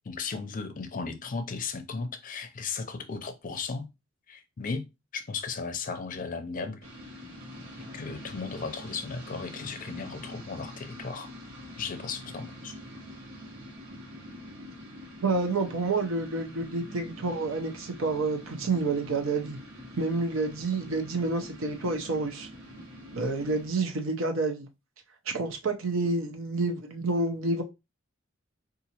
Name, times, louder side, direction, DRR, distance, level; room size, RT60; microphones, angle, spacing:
voice 1, 0.1-3.9 4.3-4.8 5.1-6.8 7.9-11.3 11.8-12.7, left 4 dB, 40° left, 0.5 m, -35 dB
sound 1, 6.8-23.7, equal, 90° right, 1.2 m, -45 dB
voice 2, 15.2-19.6 20.0-22.5 23.2-24.7 25.3-27.6, right 3 dB, 65° right, 0.7 m, -29 dB
3.9 x 2.5 x 2.8 m
head